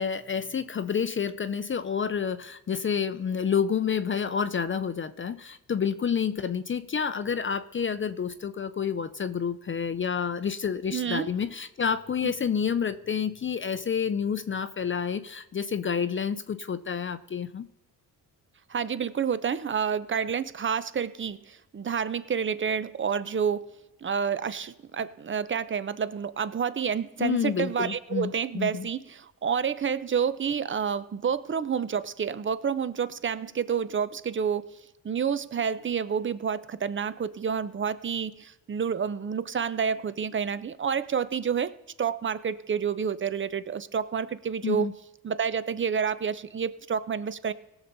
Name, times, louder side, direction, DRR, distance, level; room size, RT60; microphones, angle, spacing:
voice 1, 0.0-17.7 27.2-28.9 44.6-44.9, left 7 dB, 35° left, 12 dB, 0.6 m, -29 dB
voice 2, 10.9-11.3 18.7-23.7 24.0-34.7 35.0-41.7 42.0-44.9 45.2-47.5, right 7 dB, 30° right, 15 dB, 0.7 m, -29 dB
18.0 x 7.1 x 4.0 m, 1.0 s
cardioid pair, 80°, 38 cm